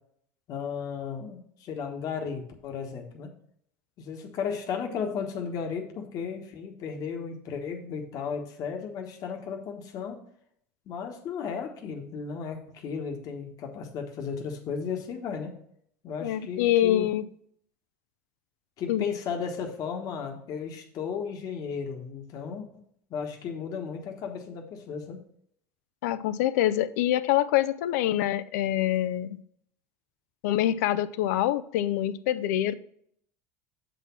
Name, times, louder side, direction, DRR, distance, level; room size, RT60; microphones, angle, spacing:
voice 1, 0.5-3.3 4.0-10.2 10.9-15.6 16.0-17.1 18.8-22.7 23.1-25.2, left 6 dB, 45° left, 1.2 m, -34 dB
voice 2, 16.2-17.3 18.9-19.1 26.0-29.4 30.4-32.7, left 13 dB, 80° left, 0.5 m, -25 dB
7.2 x 4.1 x 5.6 m
supercardioid pair, 125°, 8 cm